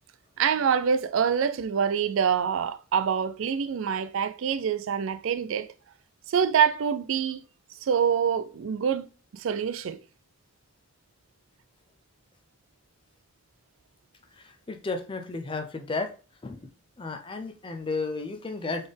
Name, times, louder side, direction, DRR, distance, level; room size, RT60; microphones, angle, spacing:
voice 1, 0.4-5.7 6.3-7.4 7.8-9.1 9.3-10.0, right 7 dB, 70° right, 0.4 m, -25 dB
voice 2, 14.3-16.1 16.4-16.7 17.0-18.9, left 3 dB, 25° left, 0.4 m, -33 dB
4.1 x 3.5 x 3.3 m
head